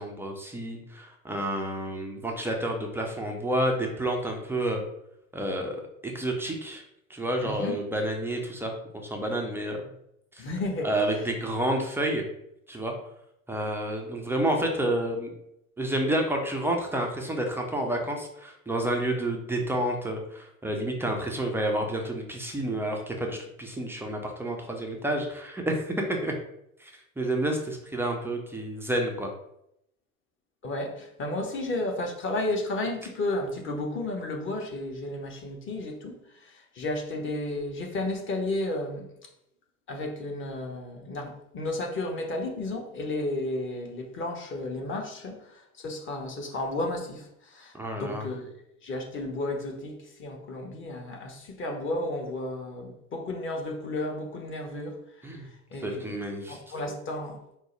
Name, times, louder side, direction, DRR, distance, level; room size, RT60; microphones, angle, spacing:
voice 1, 0.0-4.8 5.3-6.8 7.1-9.8 10.3-10.5 10.8-12.2 12.7-12.9 13.5-15.3 15.8-26.3 26.8-29.3 47.7-48.3 55.2-55.5 55.8-56.6, right 1 dB, 5° right, 1 dB, 0.3 m, -29 dB
voice 2, 7.4-7.8 10.4-10.9 30.6-39.1 39.9-48.5 48.8-55.0 55.7-56.2 56.5-57.6, left 2 dB, 30° left, 2 dB, 0.8 m, -33 dB
4.5 x 2.0 x 3.0 m, 0.79 s
hypercardioid pair, 75°, 42 cm